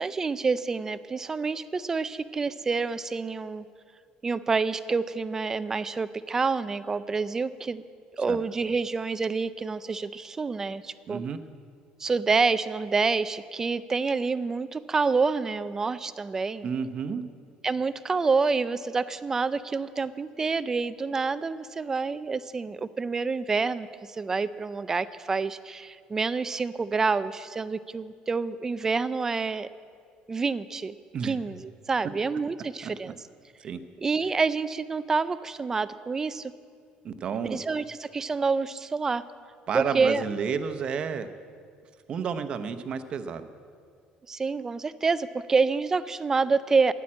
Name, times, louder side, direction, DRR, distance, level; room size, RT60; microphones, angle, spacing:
voice 1, 0.0-3.6 4.2-7.8 8.1-11.2 12.0-16.7 17.6-23.9 24.1-29.7 30.3-30.9 31.2-33.1 34.0-36.5 37.4-39.2 39.7-40.2 44.3-46.9, right 4 dB, 20° right, 14 dB, 0.4 m, -27 dB
voice 2, 11.1-11.4 16.6-17.2 31.1-31.3 32.8-32.9 33.6-33.8 37.0-37.6 39.7-41.3 42.1-43.5, right 6 dB, 40° right, 10 dB, 0.9 m, -31 dB
13.0 x 11.0 x 8.7 m, 2.2 s
cardioid pair, 155°, 3 cm